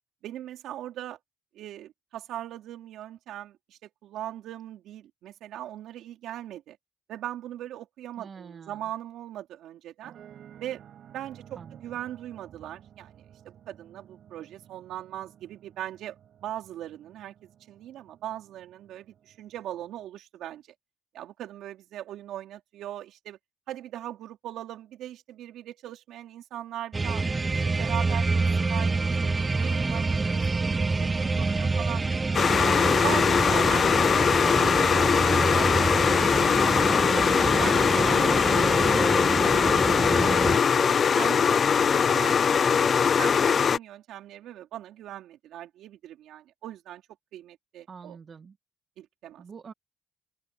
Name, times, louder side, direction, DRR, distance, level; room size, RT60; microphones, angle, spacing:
voice 1, 0.2-1.2 1.5-6.8 7.1-10.2 10.6-10.8 11.1-16.2 16.4-17.3 17.7-20.6 21.1-23.4 23.7-27.2 27.5-32.0 32.5-37.3 37.6-40.3 40.8-42.9 43.2-47.0 47.3-48.2 49.0-49.4, right 12 dB, 85° right, 4.0 m, -40 dB
voice 2, 8.2-8.9 11.5-12.0 31.2-31.5 47.9-48.6 49.4-49.7, right 6 dB, 45° right, 1.8 m, -46 dB
sound 1, 10.0-20.0, right 9 dB, 65° right, 6.2 m, -53 dB
sound 2, 26.9-40.6, right 3 dB, 25° right, 0.8 m, -27 dB
sound 3, 32.3-43.8, left 6 dB, 50° left, 0.4 m, -22 dB
open air
cardioid pair, 90°, 0 cm